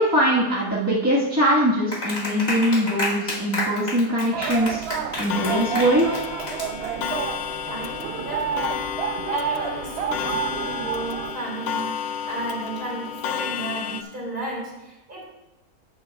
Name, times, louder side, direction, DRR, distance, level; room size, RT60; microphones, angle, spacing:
voice 1, 0.0-4.8 5.2-6.1, equal, 10° right, -7 dB, 1.3 m, -21 dB
Clapping, 1.9-7.2, left 1 dB, 30° left, 1.4 m, -30 dB
sound 1, 4.3-11.3, right 8 dB, 70° right, 0.6 m, -30 dB
Clock, 5.3-14.0, left 8 dB, 80° left, 1.1 m, -31 dB
voice 2, 7.7-8.8 9.3-15.2, right 1 dB, 30° right, -4 dB, 2.9 m, -33 dB
14.5 x 7.3 x 2.3 m, 0.98 s
omnidirectional pair, 1.6 m